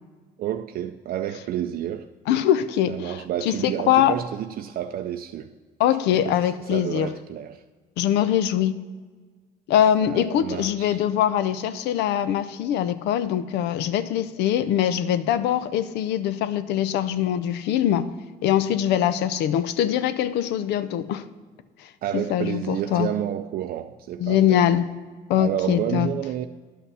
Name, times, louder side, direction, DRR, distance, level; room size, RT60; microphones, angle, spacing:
voice 1, 0.4-2.1 2.9-5.5 6.1-7.6 10.0-11.0 22.0-24.6 25.4-26.5, right 11 dB, 60° right, 0.4 m, -30 dB
voice 2, 2.3-3.2 3.5-4.2 5.8-7.1 8.0-8.8 9.7-18.1 18.4-21.2 22.1-23.1 24.2-24.9 25.3-26.1, left 10 dB, 85° left, 0.6 m, -22 dB
11.0 x 5.8 x 5.5 m
cardioid pair, 110°, 17 cm